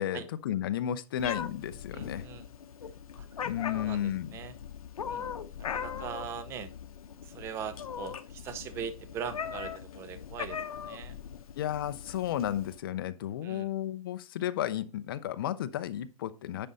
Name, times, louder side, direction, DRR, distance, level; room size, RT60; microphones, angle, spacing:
voice 1, 0.0-2.3 3.4-4.3 11.6-16.7, left 11 dB, 40° left, 0.7 m, -33 dB
Meow, 1.2-12.8, left 7 dB, 80° left, 0.9 m, -40 dB
voice 2, 1.9-2.5 3.2-3.3 3.7-4.5 5.1-5.2 5.6-6.7 7.2-11.2 13.4-13.7, right 7 dB, 15° right, 0.7 m, -41 dB
10.0 x 5.4 x 4.0 m
hypercardioid pair, 160°, 18 cm